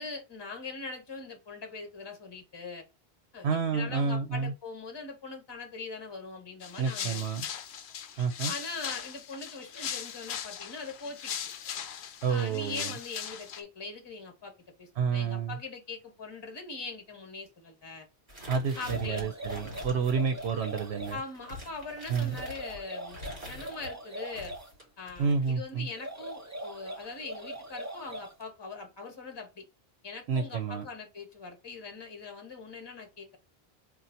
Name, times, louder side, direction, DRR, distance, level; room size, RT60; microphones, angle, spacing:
voice 1, 0.0-2.8 3.3-7.2 8.4-11.4 12.3-18.1 18.7-19.3 20.1-20.3 21.1-24.5 25.0-29.6 30.0-33.4, left 3 dB, 25° left, 1.0 m, -42 dB
voice 2, 3.4-4.5 6.8-7.5 8.2-8.5 12.2-12.9 15.0-15.6 18.5-21.2 22.1-22.4 25.2-25.9 30.3-30.8, right 5 dB, 85° right, 0.9 m, -29 dB
sound 1, 6.6-13.6, left 8 dB, 85° left, 0.9 m, -39 dB
sound 2, 18.3-23.9 24.3-25.5, left 1 dB, 40° right, 2.6 m, -45 dB
sound 3, 18.7-21.2 22.2-24.7 25.9-28.4, right 1 dB, 20° right, 0.6 m, -42 dB
3.9 x 2.4 x 4.2 m
omnidirectional pair, 1.1 m